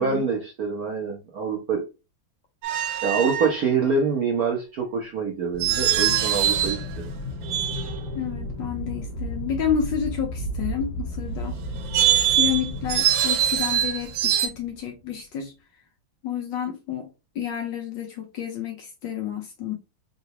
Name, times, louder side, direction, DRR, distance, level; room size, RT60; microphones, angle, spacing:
voice 1, 0.0-1.8 3.0-7.1, right 5 dB, 70° right, 0.9 m, -25 dB
sound 1, 2.6-3.6 5.6-6.9 7.4-8.1 11.7-14.5, right 11 dB, 85° right, 1.6 m, -23 dB
Aircraft, 5.5-15.0, equal, 55° left, 1.7 m, -34 dB
voice 2, 8.1-11.5 12.3-15.5 16.2-17.1 17.3-19.7, left 9 dB, 70° left, 1.2 m, -30 dB
3.8 x 2.3 x 2.8 m
omnidirectional pair, 2.4 m